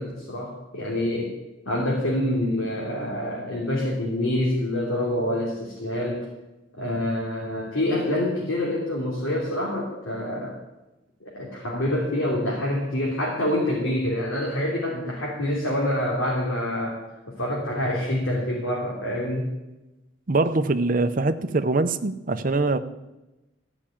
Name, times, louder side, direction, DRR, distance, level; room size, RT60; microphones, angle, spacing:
voice 1, 0.0-1.3 1.6-6.3 6.8-10.6 11.2-17.0 17.3-19.5, left 1 dB, 75° left, -4 dB, 3.1 m, -26 dB
voice 2, 20.3-22.8, right 3 dB, 40° right, 10 dB, 0.7 m, -23 dB
14.5 x 6.1 x 8.7 m, 1.0 s
head